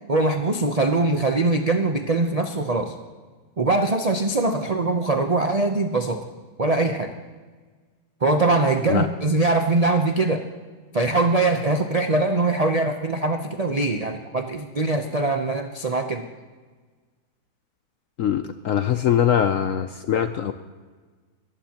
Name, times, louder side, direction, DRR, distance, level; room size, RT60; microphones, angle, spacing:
voice 1, 0.1-2.9 3.6-6.2 6.6-7.1 8.2-10.4 10.9-16.3, right 2 dB, 50° right, 4 dB, 0.4 m, -22 dB
voice 2, 18.2-20.5, left 9 dB, 70° left, 9 dB, 0.8 m, -22 dB
21.0 x 14.5 x 2.9 m, 1.4 s
omnidirectional pair, 1.9 m